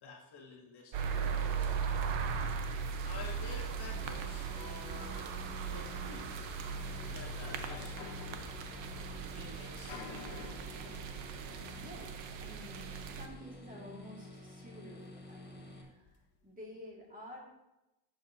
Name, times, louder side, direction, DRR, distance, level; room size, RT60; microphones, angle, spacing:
voice 1, 0.0-1.7 3.0-5.3 5.6-6.6 6.9-8.0 9.3-10.6, left 4 dB, 50° left, -2 dB, 2.0 m, -50 dB
sound 1, 0.9-13.3, right 6 dB, 60° right, 1.1 m, -38 dB
sound 2, 3.9-15.8, left 2 dB, 20° left, 1.4 m, -51 dB
sound 3, 6.2-14.8 15.2-15.3 15.5-16.1, left 6 dB, 75° left, 1.3 m, -53 dB
voice 2, 11.7-16.2 16.4-17.4, equal, 15° right, -2 dB, 2.0 m, -51 dB
11.5 x 7.9 x 2.8 m, 0.96 s
cardioid pair, 135°, 49 cm